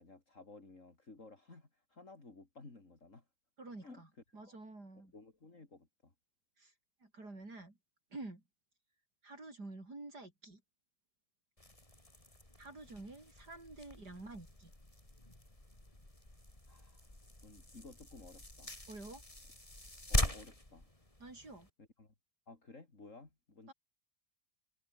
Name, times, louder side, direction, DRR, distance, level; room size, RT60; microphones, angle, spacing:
voice 1, 0.0-3.3 3.8-4.0 4.3-4.5 5.1-6.1 16.7-17.1 17.4-18.7 20.1-20.9 21.3-22.1 22.5-23.7, left 3 dB, 50° left, 4.0 m, -56 dB
voice 2, 3.6-4.1 4.3-5.1 6.6-6.7 7.0-7.8 8.1-8.4 9.2-10.6 12.6-14.7 18.9-19.2 21.2-21.7 23.7-23.8, right 2 dB, 75° right, 6.4 m, -49 dB
sound 1, 11.6-21.7, left 1 dB, 20° left, 4.3 m, -42 dB
omnidirectional pair, 1.8 m